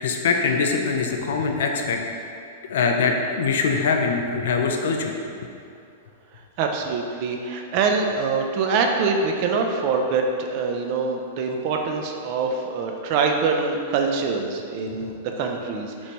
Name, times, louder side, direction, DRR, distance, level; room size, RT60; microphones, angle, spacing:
voice 1, 0.0-2.0 2.7-5.1, left 4 dB, 70° left, 3 dB, 0.3 m, -23 dB
voice 2, 6.3-16.1, right 4 dB, 50° right, 3 dB, 0.3 m, -24 dB
3.2 x 3.0 x 2.6 m, 2.5 s
hypercardioid pair, 110°, 0 cm